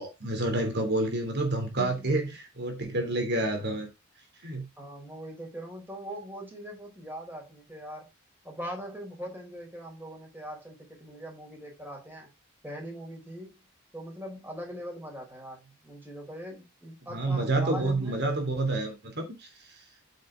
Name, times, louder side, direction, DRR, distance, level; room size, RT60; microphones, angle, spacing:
voice 1, 0.0-3.9 4.4-4.6 17.1-19.5, right 2 dB, 50° right, 3.2 m, -29 dB
voice 2, 1.8-2.1 4.8-8.1 8.4-12.3 12.6-13.6 13.9-18.3, equal, 10° right, 4.4 m, -41 dB
8.9 x 6.6 x 3.9 m
head